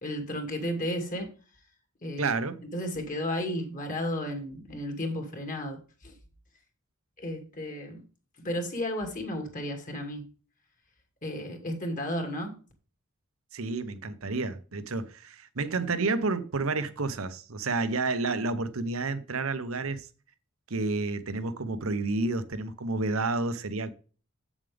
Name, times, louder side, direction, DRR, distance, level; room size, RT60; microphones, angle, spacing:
voice 1, 0.0-1.3 2.0-2.4 2.7-6.1 7.2-8.0 8.4-10.2 11.2-12.5, left 1 dB, 40° left, 2.4 m, -33 dB
voice 2, 2.2-2.6 13.5-20.1 20.7-23.9, right 3 dB, 75° right, 0.9 m, -30 dB
8.2 x 7.3 x 3.5 m
head